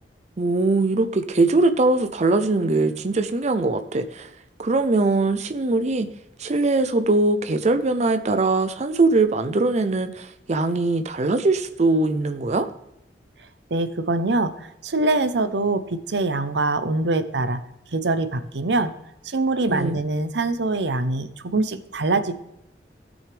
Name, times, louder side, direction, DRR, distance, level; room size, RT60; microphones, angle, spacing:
voice 1, 0.4-4.3 4.6-6.1 6.4-12.7 19.7-20.0, right 3 dB, 40° right, 8 dB, 0.5 m, -21 dB
voice 2, 13.7-17.6 17.9-18.9 19.2-22.3, right 2 dB, 80° right, 11 dB, 0.8 m, -24 dB
16.5 x 6.3 x 3.4 m, 0.85 s
head